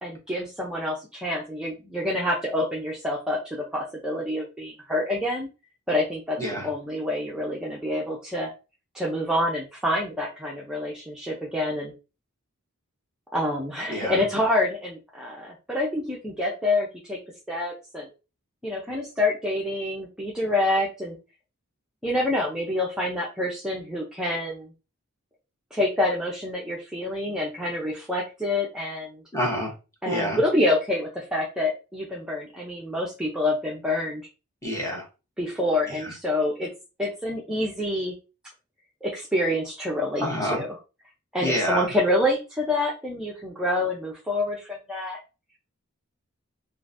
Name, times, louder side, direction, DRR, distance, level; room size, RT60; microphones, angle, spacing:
voice 1, 0.0-5.5 5.9-8.5 8.9-11.9 13.3-17.2 17.5-18.1 18.6-21.2 22.0-24.7 25.7-29.2 30.0-34.2 35.4-36.7 37.0-38.1 39.0-40.8 41.3-45.2, left 1 dB, 5° right, -4 dB, 0.6 m, -27 dB
voice 2, 29.3-29.7 30.1-30.4 34.6-35.0 40.2-40.6 41.4-41.9, equal, 15° left, -2 dB, 1.0 m, -27 dB
3.7 x 2.6 x 2.5 m, 0.30 s
head